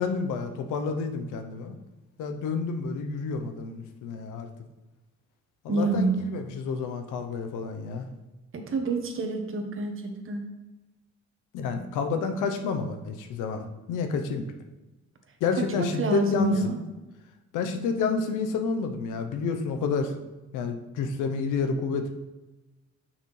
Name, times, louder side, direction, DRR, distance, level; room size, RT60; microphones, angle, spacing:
voice 1, 0.0-1.7 2.2-4.5 5.6-8.1 11.5-14.4 15.4-16.7 17.5-20.1 20.5-22.1, left 5 dB, 90° left, 6 dB, 0.8 m, -29 dB
voice 2, 5.7-6.2 8.5-9.9 10.3-10.4 15.8-16.8, right 3 dB, 45° right, 4 dB, 1.2 m, -27 dB
6.8 x 5.8 x 3.2 m, 1.1 s
cardioid pair, 90°, 30 cm